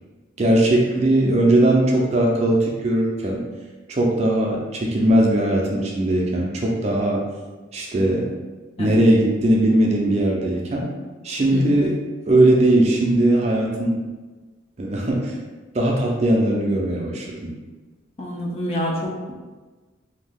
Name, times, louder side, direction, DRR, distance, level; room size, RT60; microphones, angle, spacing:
voice 1, 0.4-3.4 3.9-7.3 7.7-8.3 8.8-10.9 11.2-14.0 14.8-15.3 15.7-17.6, right 1 dB, 35° right, -2 dB, 0.4 m, -19 dB
voice 2, 18.2-19.1, left 1 dB, 30° left, -2 dB, 0.4 m, -27 dB
2.6 x 2.2 x 3.4 m, 1.3 s
head